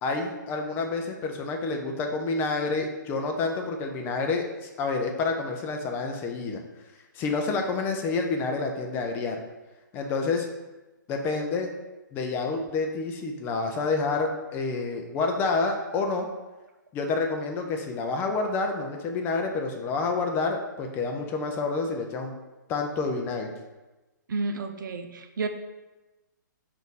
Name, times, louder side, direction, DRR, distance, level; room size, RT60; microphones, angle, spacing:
voice 1, 0.0-6.6 7.1-9.4 9.9-10.5 11.1-11.7 12.1-16.3 16.9-22.3 22.7-23.5, left 3 dB, 20° left, 3 dB, 0.5 m, -28 dB
voice 2, 24.3-25.5, right 3 dB, 75° right, 7 dB, 0.6 m, -31 dB
5.0 x 2.6 x 4.0 m, 1.1 s
hypercardioid pair, 145°, 11 cm